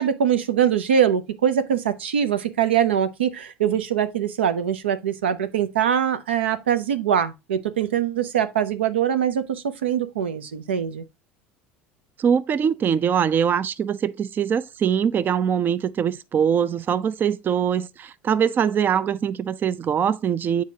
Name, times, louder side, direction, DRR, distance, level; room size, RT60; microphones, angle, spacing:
voice 1, 0.0-11.0, right 8 dB, 90° right, 0.6 m, -23 dB
voice 2, 12.2-20.6, right 8 dB, 35° right, 0.4 m, -22 dB
7.4 x 4.7 x 2.7 m
hypercardioid pair, 80°, 6 cm